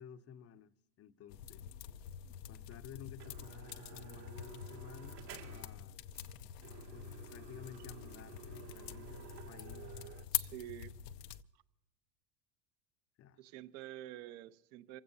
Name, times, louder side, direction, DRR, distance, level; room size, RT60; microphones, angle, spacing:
voice 1, 0.0-1.7 2.5-6.0 6.9-9.9 13.2-13.4, left 8 dB, 30° left, 0.8 m, -54 dB
sound 1, 1.3-11.4, left 12 dB, 75° left, 0.8 m, -45 dB
sound 2, 2.7-2.8 3.2-5.8 6.1-6.3 6.6-10.2, right 12 dB, 70° right, 2.5 m, -53 dB
voice 2, 10.3-10.9 13.4-15.0, right 14 dB, 55° right, 1.0 m, -48 dB
27.5 x 16.0 x 2.8 m
hypercardioid pair, 90°, 50 cm